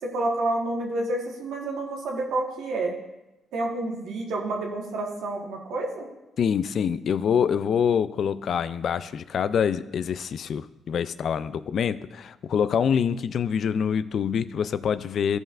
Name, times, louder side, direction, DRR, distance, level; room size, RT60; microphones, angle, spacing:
voice 1, 0.0-2.9 3.5-6.1, right 2 dB, 80° right, 0 dB, 1.5 m, -29 dB
voice 2, 6.4-15.4, left 7 dB, 60° left, 14 dB, 0.3 m, -25 dB
15.0 x 5.3 x 2.5 m, 1.0 s
cardioid pair, 90°, 0 cm